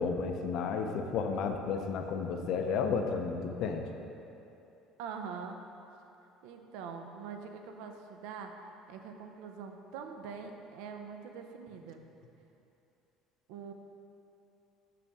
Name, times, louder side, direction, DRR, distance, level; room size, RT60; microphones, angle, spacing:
voice 1, 0.0-3.8, left 5 dB, 45° left, 5 dB, 0.5 m, -32 dB
voice 2, 5.0-5.6 6.4-8.5 8.9-12.0 13.5-13.7, right 6 dB, 85° right, 5 dB, 0.5 m, -43 dB
6.8 x 6.3 x 3.5 m, 2.9 s
cardioid pair, 180°, 0 cm